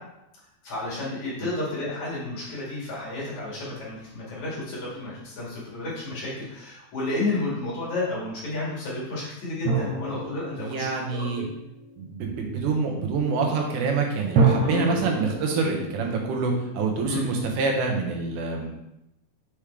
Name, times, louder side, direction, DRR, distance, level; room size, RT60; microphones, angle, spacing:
voice 1, 0.6-10.9 11.4-11.5 14.6-14.9 17.1-17.3, left 2 dB, 65° left, -7 dB, 3.7 m, -31 dB
sound 1, 9.6-12.0 14.4-17.3, right 4 dB, 60° right, 1.7 m, -28 dB
voice 2, 10.6-11.4 12.0-18.7, right 4 dB, 85° right, 1 dB, 2.6 m, -26 dB
7.2 x 5.0 x 3.3 m, 0.87 s
omnidirectional pair, 3.6 m